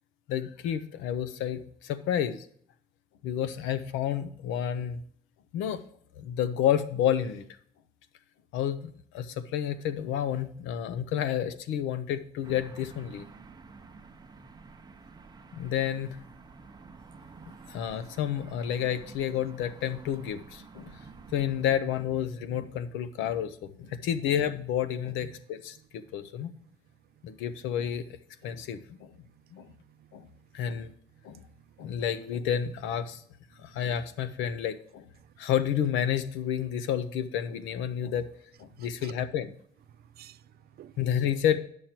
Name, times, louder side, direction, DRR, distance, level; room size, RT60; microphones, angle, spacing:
voice 1, 0.3-2.4 3.2-5.0 5.5-5.8 6.2-7.4 8.5-13.2 15.5-16.2 17.7-20.9 21.3-25.8 26.1-26.5 27.2-28.0 28.4-29.1 29.5-29.7 30.1-30.2 30.5-30.9 31.2-31.4 31.8-33.2 33.6-35.0 35.4-38.3 38.6-39.5 41.0-41.6, left 9 dB, 85° left, 0.8 m, -30 dB
sound 1, 12.4-21.8, right 4 dB, 20° right, 0.8 m, -50 dB
voice 2, 20.8-21.5 23.9-24.0 25.2-25.4 28.5-28.7 29.6-30.4 31.9-32.0 35.2-35.3 38.8-39.1 40.0-40.9, right 11 dB, 55° right, 0.5 m, -54 dB
9.2 x 6.4 x 4.4 m
cardioid pair, 105°, 20 cm